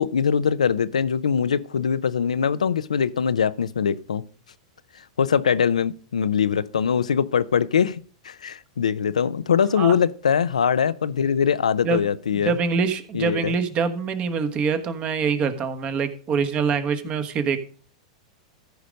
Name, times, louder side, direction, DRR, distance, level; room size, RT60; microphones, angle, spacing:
voice 1, 0.0-4.2 5.2-8.0 8.2-12.6 13.1-13.5, left 7 dB, 90° left, 0.5 m, -22 dB
voice 2, 12.4-17.6, right 5 dB, 35° right, 1.3 m, -24 dB
14.0 x 5.1 x 5.3 m
hypercardioid pair, 110°, 4 cm